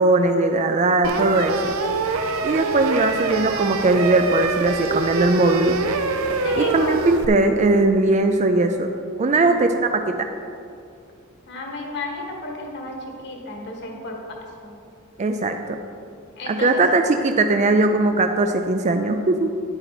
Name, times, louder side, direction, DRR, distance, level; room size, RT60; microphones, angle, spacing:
voice 1, 0.0-1.7 2.4-5.8 6.6-8.9 9.2-10.3 15.2-15.8 16.5-19.5, right 2 dB, 35° right, 6 dB, 0.4 m, -19 dB
sound 1, 1.0-7.3, right 4 dB, 85° right, 0.7 m, -25 dB
voice 2, 6.4-7.0 9.2-9.7 11.5-14.2 14.6-14.7 16.4-16.8, left 2 dB, 55° left, 0 dB, 1.7 m, -33 dB
10.5 x 8.8 x 4.1 m, 2.5 s
head